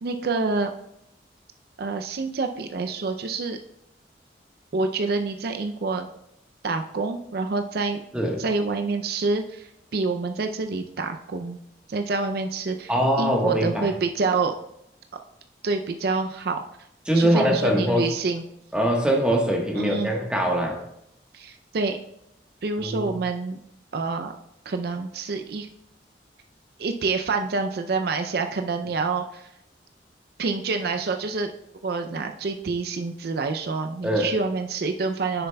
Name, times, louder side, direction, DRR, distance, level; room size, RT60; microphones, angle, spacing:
voice 1, 0.0-0.7 1.8-3.6 4.7-6.1 6.6-8.0 8.4-11.6 11.9-14.5 15.6-16.6 17.1-18.4 19.8-20.1 21.3-22.0 22.6-23.6 23.9-24.3 24.7-25.7 26.8-29.5 30.4-31.5 31.8-35.5, right 3 dB, 60° right, 6 dB, 0.4 m, -27 dB
voice 2, 8.1-8.4 12.9-13.9 17.1-18.1 18.7-20.8 22.8-23.1 34.0-34.3, right 1 dB, 5° right, 0 dB, 1.2 m, -22 dB
9.7 x 6.7 x 2.2 m, 0.79 s
head